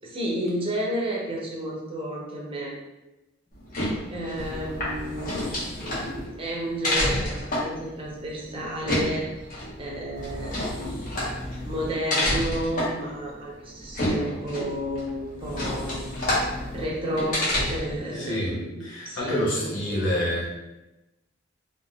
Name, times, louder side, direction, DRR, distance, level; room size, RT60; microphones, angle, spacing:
voice 1, 0.0-2.7 4.1-5.5 5.8-11.1 11.7-17.4 17.7-20.0, right 1 dB, 30° right, -3 dB, 0.7 m, -32 dB
sound 1, 3.5-18.0, left 1 dB, 45° left, 1.0 m, -29 dB
voice 2, 18.1-20.5, equal, 70° left, -6 dB, 1.0 m, -27 dB
3.5 x 2.7 x 2.2 m, 0.98 s
head